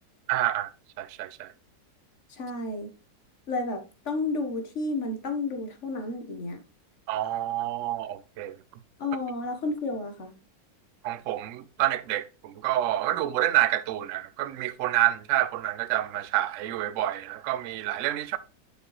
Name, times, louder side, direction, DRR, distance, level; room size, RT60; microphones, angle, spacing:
voice 1, 0.3-0.7 1.0-1.5 7.1-8.6 11.0-18.4, right 13 dB, 70° right, 0.7 m, -28 dB
voice 2, 2.3-2.9 3.5-6.6 9.0-10.3, left 2 dB, 45° left, 1.4 m, -31 dB
7.5 x 6.7 x 3.1 m
omnidirectional pair, 2.0 m